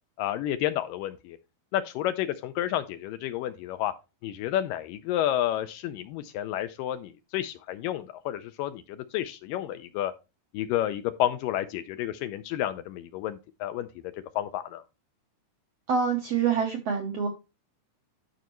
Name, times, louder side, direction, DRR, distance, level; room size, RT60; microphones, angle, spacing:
voice 1, 0.2-1.4 1.7-3.9 4.2-10.1 10.5-13.9 14.4-14.8, left 12 dB, 80° left, 2.1 m, -30 dB
voice 2, 15.9-17.3, right 6 dB, 75° right, 1.5 m, -26 dB
11.5 x 5.4 x 3.0 m
omnidirectional pair, 4.2 m